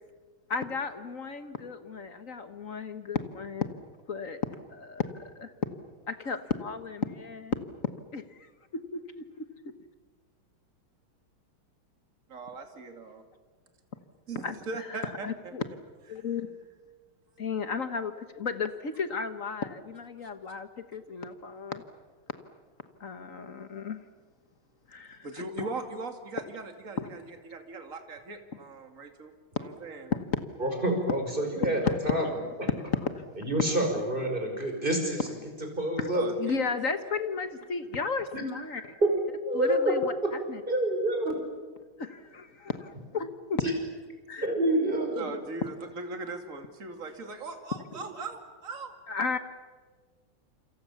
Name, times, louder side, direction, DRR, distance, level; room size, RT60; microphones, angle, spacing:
voice 1, 0.5-3.7 4.1-4.4 4.7-5.5 6.1-7.6 8.1-8.4 8.7-9.5 14.4-15.6 16.1-16.5 17.4-21.8 23.0-24.0 24.9-25.7 27.0-27.1 30.1-30.2 31.8-32.0 32.9-33.2 33.6-33.8 36.0-36.1 36.4-38.8 39.5-40.1 40.5-40.6 42.0-43.6 44.3-44.5 49.1-49.4, left 5 dB, 45° left, 10 dB, 1.4 m, -34 dB
voice 2, 12.3-13.2 14.3-16.2 20.2-20.3 25.2-30.2 36.1-36.8 45.1-48.9, right 3 dB, 40° right, 6 dB, 2.7 m, -40 dB
voice 3, 30.6-32.2 32.6-32.7 33.4-35.2 35.8-36.2 38.3-38.4 39.0-39.1 39.5-39.9 40.2-40.3 40.7-41.3 43.6-43.7 44.4-45.2, right 1 dB, 25° right, 3 dB, 5.5 m, -27 dB
28.5 x 26.5 x 7.2 m, 1.4 s
omnidirectional pair, 2.3 m